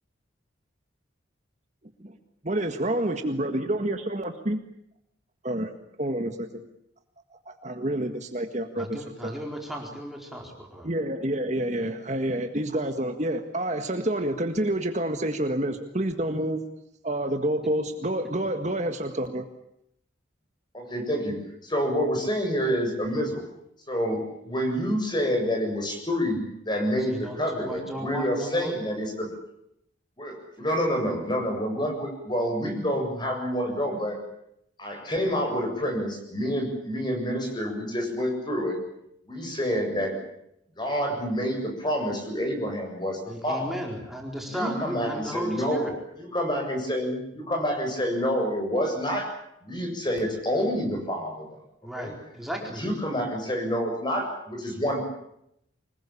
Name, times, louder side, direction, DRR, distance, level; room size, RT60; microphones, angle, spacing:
voice 1, 2.5-4.6 5.4-5.7 6.0-6.5 7.4-8.9 9.2-9.4 10.8-16.6 17.0-19.4, right 1 dB, 35° right, 6 dB, 1.8 m, -28 dB
voice 2, 8.8-10.9 27.0-28.7 43.3-46.0 51.8-52.9, equal, ahead, 1 dB, 4.4 m, -35 dB
voice 3, 20.7-21.4 21.6-23.4 23.9-29.3 30.2-34.2 34.8-38.8 39.3-40.1 40.8-43.7 44.5-45.9 46.2-49.3 49.6-51.6 52.0-52.1 52.8-55.0, equal, 25° left, 3 dB, 7.5 m, -28 dB
25.5 x 21.0 x 8.6 m, 0.76 s
head